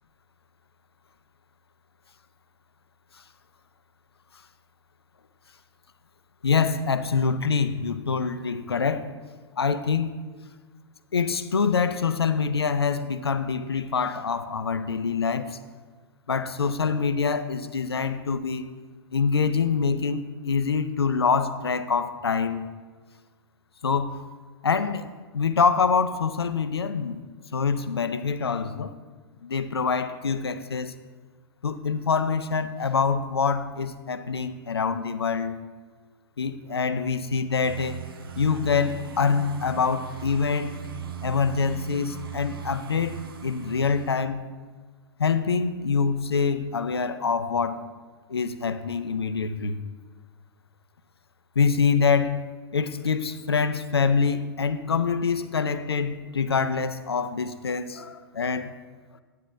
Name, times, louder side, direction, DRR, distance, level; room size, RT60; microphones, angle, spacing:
voice 1, 6.4-9.1 9.6-10.2 11.1-15.6 16.3-18.6 19.1-22.6 23.8-24.2 24.6-25.0 25.3-27.2 27.5-28.9 29.4-30.9 31.6-35.5 36.4-38.0 38.4-40.8 41.2-44.4 45.2-47.8 48.3-49.8 51.6-52.5 52.7-58.7, left 5 dB, 75° left, 12 dB, 0.6 m, -25 dB
sound 1, 37.6-44.1, right 9 dB, 60° right, 0.8 m, -39 dB
9.3 x 9.2 x 3.4 m, 1.4 s
figure-of-eight pair, 105°, 13 cm